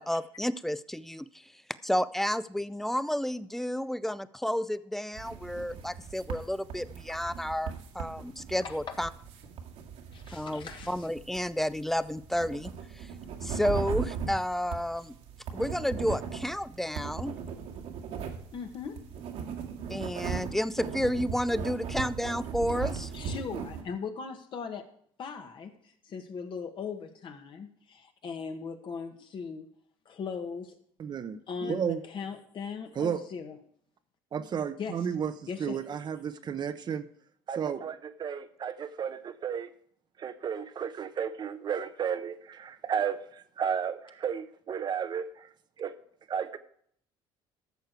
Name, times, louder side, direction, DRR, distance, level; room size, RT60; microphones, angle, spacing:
voice 1, 0.0-1.5 1.8-9.1 10.3-13.1 13.4-15.2 15.5-17.3 19.9-23.1, equal, 5° left, 16 dB, 0.5 m, -31 dB
sound 1, 5.1-23.8, right 6 dB, 75° right, 1.9 m, -38 dB
voice 2, 8.6-8.9 10.1-11.1 18.5-19.0 23.1-24.8 25.2-25.7 26.0-29.7 30.0-30.7 31.5-33.6 34.8-35.0 35.5-35.8, left 5 dB, 50° left, 5 dB, 1.7 m, -39 dB
voice 3, 31.0-32.0 32.9-33.2 34.3-35.3 35.6-37.0 37.5-39.7 40.2-45.5 45.8-45.9 46.3-46.6, right 7 dB, 40° right, 10 dB, 0.8 m, -33 dB
13.5 x 6.5 x 4.7 m, 0.63 s
supercardioid pair, 95°, 11 cm